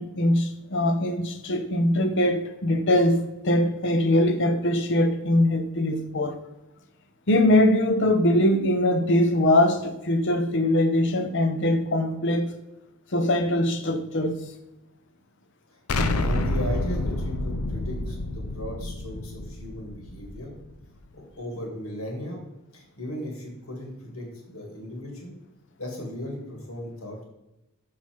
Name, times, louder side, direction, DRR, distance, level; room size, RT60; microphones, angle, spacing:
voice 1, 0.0-6.4 7.3-12.5 13.1-14.4, left 1 dB, 55° left, 8 dB, 0.8 m, -22 dB
voice 2, 15.7-20.6 21.1-22.4 22.7-25.4 25.8-27.2, equal, 75° left, 1 dB, 2.3 m, -36 dB
Explosion, 15.9-20.7, left 2 dB, 90° left, 0.6 m, -28 dB
6.3 x 5.7 x 4.6 m, 0.94 s
head